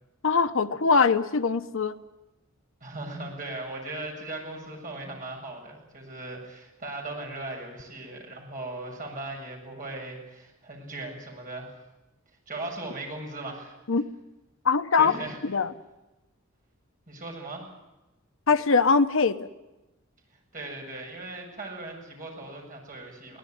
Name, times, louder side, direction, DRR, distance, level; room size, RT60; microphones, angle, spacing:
voice 1, 0.2-2.0 13.9-14.1 14.6-15.1 15.4-15.7 18.5-19.5, left 5 dB, 65° left, 11 dB, 0.9 m, -22 dB
voice 2, 2.8-11.8 12.5-13.7 15.0-15.4 17.1-17.6 20.5-23.4, right 2 dB, 40° right, 1 dB, 7.4 m, -38 dB
23.0 x 18.0 x 9.5 m, 1.0 s
head